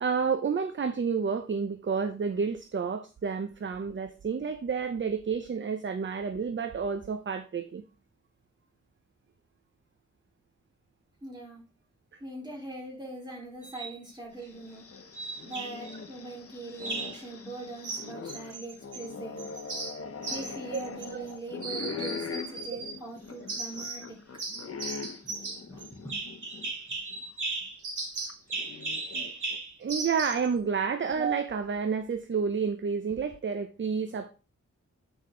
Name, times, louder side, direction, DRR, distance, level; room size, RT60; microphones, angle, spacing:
voice 1, 0.0-7.8 12.1-12.2 20.7-20.8 21.1-21.2 29.8-34.3, right 6 dB, 40° right, 0.6 m, -30 dB
voice 2, 11.2-11.6 12.2-14.9 15.4-19.5 20.3-24.2 25.7-26.2, right 2 dB, 15° right, 3.6 m, -41 dB
sound 1, 13.6-14.0 15.2-16.0 16.8-17.2 17.8-19.1 19.4-21.3 21.6-23.0 23.5-24.1 24.4-30.5, right 3 dB, 90° right, 2.1 m, -37 dB
sound 2, 14.4-26.7 27.1-27.2 28.3-29.6, left 5 dB, 50° left, 0.8 m, -42 dB
8.6 x 5.1 x 3.8 m
wide cardioid pair, 125°, 30 cm